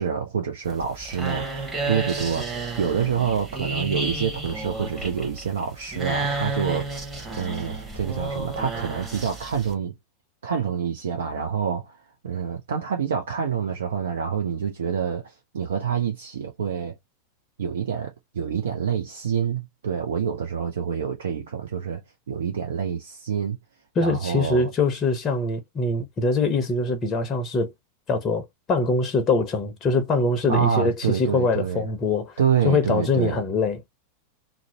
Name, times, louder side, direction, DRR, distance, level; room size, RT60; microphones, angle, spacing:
voice 1, 0.0-7.0 7.4-9.9 10.4-12.0 12.2-17.0 17.6-22.0 22.3-23.6 24.0-24.7 30.5-31.8 32.4-33.4, right 7 dB, 65° right, 0.5 m, -27 dB
sound 1, 0.6-9.7, right 3 dB, 15° right, 1.0 m, -31 dB
voice 2, 24.0-27.7 28.1-32.3 32.6-33.8, left 3 dB, 30° left, 0.6 m, -23 dB
2.5 x 2.0 x 2.7 m
figure-of-eight pair, 90°, 0 cm